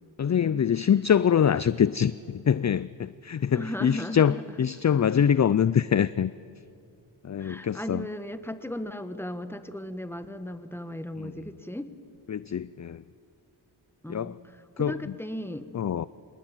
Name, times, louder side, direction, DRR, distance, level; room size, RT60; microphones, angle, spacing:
voice 1, 0.2-6.3 7.2-8.1 11.2-11.3 12.3-13.0 14.1-14.4 14.8-15.1 15.7-16.1, left 8 dB, 35° left, 17 dB, 0.5 m, -24 dB
voice 2, 3.6-4.4 7.4-11.9 14.0-14.4 14.8-15.7, left 1 dB, 5° left, 9 dB, 1.7 m, -36 dB
27.0 x 19.5 x 9.1 m, 2.5 s
cardioid pair, 40°, 47 cm